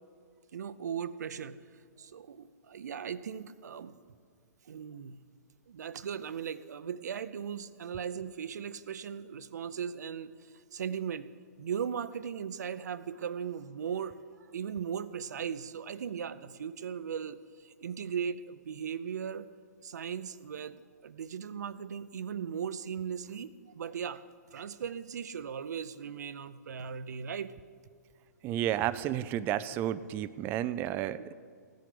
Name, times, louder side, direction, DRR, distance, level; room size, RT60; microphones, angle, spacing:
voice 1, 0.5-1.6 2.0-3.9 4.7-5.2 5.7-10.3 10.7-11.3 11.6-14.1 14.5-19.5 19.8-24.2 24.5-27.5 31.2-31.3, right 7 dB, 70° right, 14 dB, 0.6 m, -38 dB
voice 2, 28.4-31.3, right 12 dB, 20° right, 13 dB, 0.3 m, -32 dB
16.0 x 10.5 x 5.1 m, 2.1 s
hypercardioid pair, 135°, 9 cm